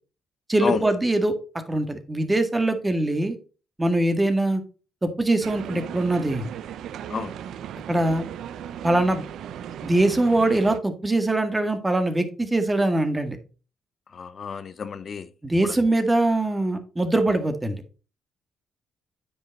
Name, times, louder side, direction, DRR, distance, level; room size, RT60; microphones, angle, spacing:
voice 1, 0.5-1.3 1.7-3.4 3.8-4.6 5.0-6.5 7.9-8.3 8.8-9.2 9.8-13.4 15.4-17.8, right 2 dB, 15° right, 1.7 m, -22 dB
sound 1, 5.4-10.8, right 9 dB, 75° right, 0.6 m, -37 dB
voice 2, 14.1-15.3, left 6 dB, 45° left, 0.6 m, -29 dB
9.4 x 5.5 x 4.0 m
cardioid pair, 90°, 0 cm